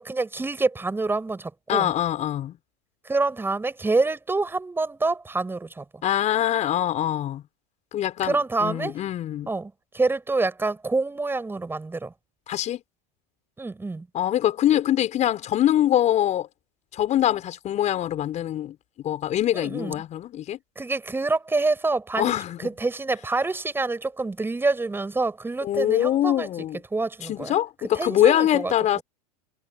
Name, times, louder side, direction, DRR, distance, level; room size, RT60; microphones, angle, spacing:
voice 1, 0.0-1.9 3.0-5.8 8.2-8.9 9.5-12.1 13.6-14.1 19.5-20.0 20.8-22.3 22.6-26.5 26.9-27.5 27.9-28.7, right 3 dB, 10° right, 6.5 m, -26 dB
voice 2, 1.7-2.6 6.0-7.4 7.9-9.5 12.5-12.8 14.1-16.5 16.9-18.8 19.0-20.6 22.2-22.7 25.6-26.8 27.2-29.0, left 12 dB, 35° left, 5.2 m, -23 dB
hypercardioid pair, 95°, 21 cm